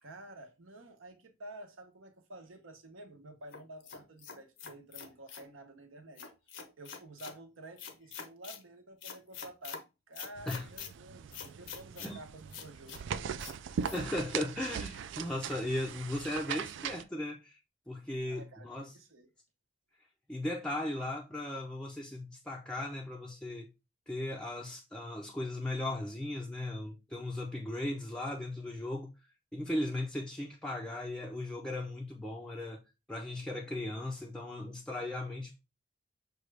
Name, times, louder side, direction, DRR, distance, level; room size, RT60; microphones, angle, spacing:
voice 1, 0.0-6.3 6.8-13.0 18.3-19.3, right 1 dB, 80° right, 0.9 m, -51 dB
sound 1, 3.5-5.5 6.2-7.4 7.8-8.6 9.0-9.8 10.1-10.9 11.3-12.1 12.5-13.0 13.4-13.6 13.8-14.0, left 7 dB, 65° left, 0.6 m, -45 dB
sound 2, 10.3-17.0, right 7 dB, 60° right, 0.3 m, -40 dB
voice 2, 13.9-17.6 17.9-18.9 20.3-23.7 24.1-32.8 33.1-35.6, left 1 dB, 5° left, 0.4 m, -37 dB
6.2 x 2.3 x 3.2 m
head